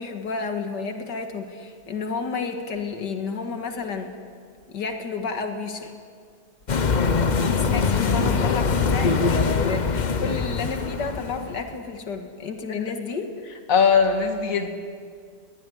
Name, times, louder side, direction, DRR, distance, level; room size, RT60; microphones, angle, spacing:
voice 1, 0.0-4.1 4.7-5.9 7.3-13.3, left 4 dB, 85° left, 5 dB, 2.4 m, -31 dB
sound 1, 6.7-11.7, left 5 dB, 35° left, 0.7 m, -23 dB
voice 2, 13.7-14.7, left 5 dB, 55° left, 5 dB, 2.4 m, -19 dB
21.5 x 20.5 x 9.9 m, 2.1 s
omnidirectional pair, 1.8 m